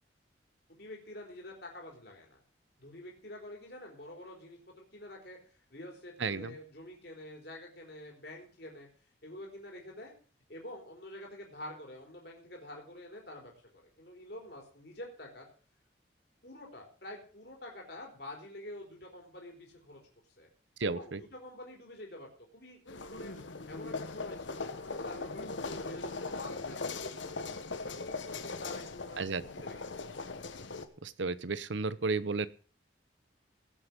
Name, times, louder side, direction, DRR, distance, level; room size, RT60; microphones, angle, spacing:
voice 1, 0.7-2.4 2.8-8.9 9.2-10.1 10.5-15.5 16.4-20.0 20.4-20.5 20.8-23.4 23.7-29.9, left 1 dB, 55° left, 0 dB, 3.8 m, -48 dB
voice 2, 6.2-6.5 20.8-21.2 29.2-29.4 31.0-32.5, right 4 dB, 75° right, 16 dB, 0.8 m, -33 dB
sound 1, 22.9-30.9, left 3 dB, 80° left, 1.3 m, -40 dB
17.5 x 8.1 x 5.2 m, 0.40 s
head